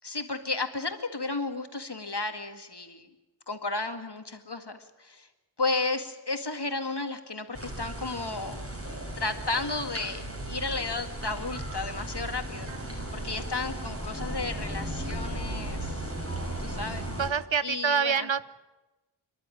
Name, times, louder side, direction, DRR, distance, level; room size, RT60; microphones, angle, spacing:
voice 1, 0.0-3.1 3.5-5.3 5.6-8.6 9.2-16.1 16.6-17.1 17.6-18.3, left 3 dB, 55° left, 6 dB, 2.0 m, -33 dB
sound 1, 7.5-17.3, right 1 dB, 30° right, 5.7 m, -36 dB
voice 2, 12.7-13.1 16.7-16.9 17.2-18.4, right 6 dB, 70° right, 16 dB, 0.8 m, -28 dB
28.5 x 11.5 x 9.8 m, 1.1 s
wide cardioid pair, 40°, 47 cm